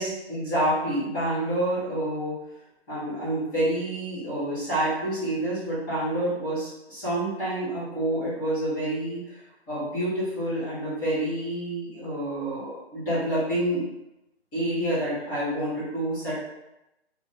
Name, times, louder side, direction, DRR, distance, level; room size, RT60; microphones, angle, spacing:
voice 1, 0.3-2.3 2.9-13.9 14.5-16.4, right 1 dB, 10° left, -13 dB, 0.6 m, -28 dB
2.4 x 2.3 x 2.9 m, 0.91 s
figure-of-eight pair, 145°, 32 cm